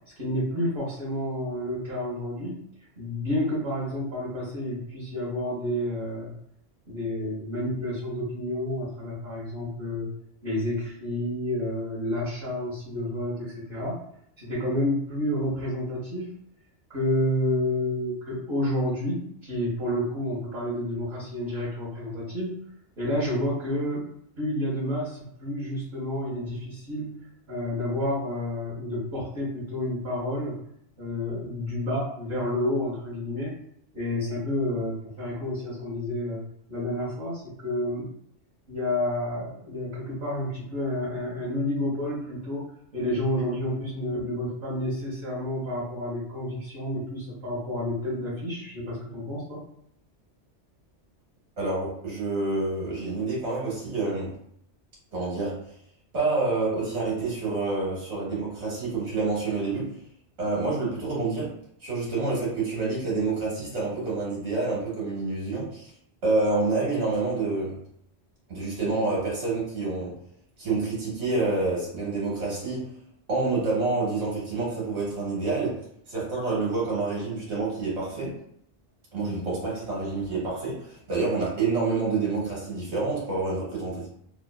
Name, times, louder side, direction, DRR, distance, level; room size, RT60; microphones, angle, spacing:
voice 1, 0.2-2.6 3.0-6.3 6.9-10.1 10.4-14.0 14.4-16.3 16.9-22.5 23.0-24.0 24.4-30.6 31.0-33.6 33.9-36.4 36.7-38.1 38.7-42.7 42.9-49.7, left 1 dB, 55° right, -9 dB, 1.1 m, -30 dB
voice 2, 51.6-54.3 55.1-55.6 56.1-59.9 60.4-61.5 61.8-65.9 66.2-67.8 68.5-70.2 70.6-72.9 73.3-75.8 76.1-78.4 79.1-84.1, right 3 dB, 70° right, -5 dB, 1.5 m, -28 dB
2.9 x 2.2 x 2.2 m, 0.70 s
omnidirectional pair, 1.2 m